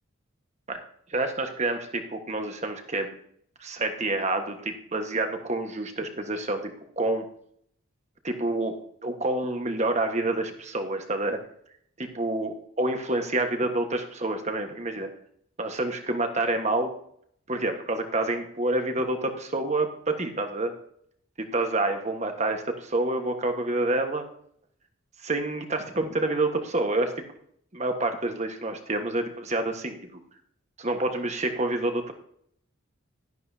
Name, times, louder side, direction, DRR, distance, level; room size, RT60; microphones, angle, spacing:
voice 1, 1.1-3.2 3.6-6.7 7.0-7.2 8.2-8.7 9.0-11.4 12.0-15.1 15.6-16.9 17.5-20.7 21.4-24.2 25.2-27.2 27.7-30.0 30.8-32.1, right 2 dB, 30° right, 5 dB, 1.4 m, -28 dB
12.5 x 11.0 x 2.8 m, 0.66 s
head